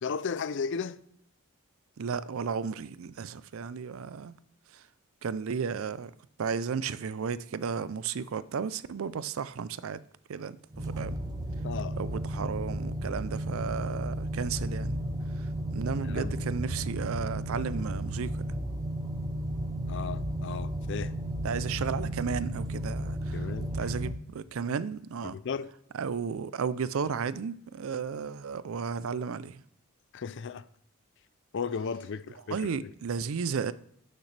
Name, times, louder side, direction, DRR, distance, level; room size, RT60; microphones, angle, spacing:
voice 1, 0.0-1.0 11.6-12.0 16.0-16.5 19.9-21.2 23.3-23.9 25.2-25.7 30.1-30.6 31.5-32.9, left 5 dB, 55° left, 0.4 m, -35 dB
voice 2, 2.0-4.4 5.2-6.1 6.4-10.0 10.3-11.2 12.0-15.0 15.7-18.3 21.4-23.3 23.7-25.4 25.9-29.6 32.5-33.7, right 6 dB, 70° right, 0.4 m, -33 dB
sound 1, 10.7-24.1, right 1 dB, 15° right, 0.6 m, -33 dB
12.0 x 6.6 x 3.3 m
head